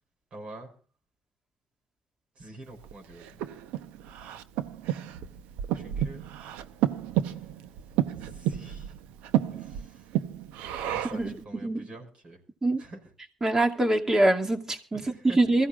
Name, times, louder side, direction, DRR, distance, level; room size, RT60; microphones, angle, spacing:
voice 1, 0.3-0.7 2.3-3.5 5.7-6.2 7.2-7.7 8.2-8.9 9.5-10.2 10.9-12.4 12.8-13.1 14.9-15.4, right 2 dB, 55° right, 5.8 m, -47 dB
Breathing, 2.8-11.3, right 12 dB, 90° right, 0.8 m, -31 dB
voice 2, 11.1-11.9 12.6-12.8 13.4-15.7, right 2 dB, 25° right, 2.4 m, -24 dB
23.5 x 15.5 x 2.5 m
supercardioid pair, 80°, 2 cm